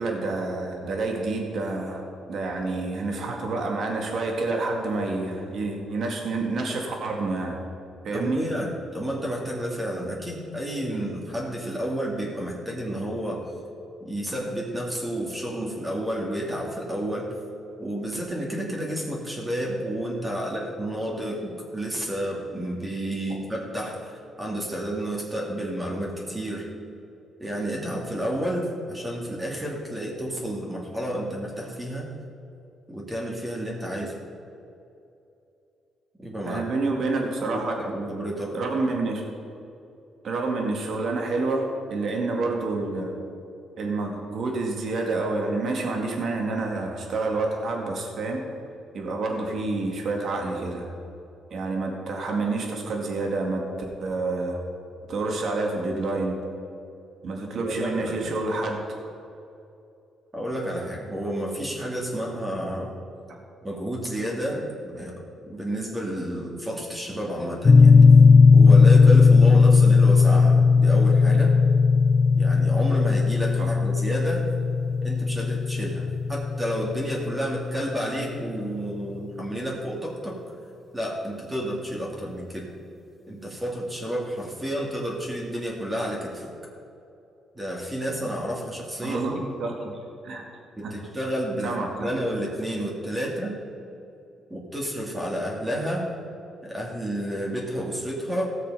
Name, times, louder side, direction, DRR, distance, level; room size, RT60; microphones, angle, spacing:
voice 1, 0.0-7.6 8.0-8.4 36.5-38.1 38.5-39.2 40.2-43.2 43.8-48.4 48.9-50.9 51.5-53.6 54.0-54.6 55.1-56.4 57.2-59.0 63.3-63.4 73.6-73.8 89.0-90.0 90.2-90.4 90.8-91.0 91.6-92.1, right 3 dB, 60° right, 1 dB, 2.2 m, -28 dB
voice 2, 8.1-13.5 14.0-17.3 17.8-26.7 27.4-32.1 32.9-34.2 36.2-36.7 37.5-38.6 57.6-58.3 60.3-62.9 63.6-67.9 68.5-71.5 72.3-74.5 75.0-80.4 80.9-82.6 83.3-86.5 87.5-89.2 90.8-93.6 94.5-96.1 96.6-98.4, equal, 15° right, -2 dB, 2.4 m, -30 dB
sound 1, 67.6-77.8, left 4 dB, 35° left, 0.5 m, -16 dB
16.5 x 6.6 x 5.5 m, 2.7 s
cardioid pair, 90°, 0 cm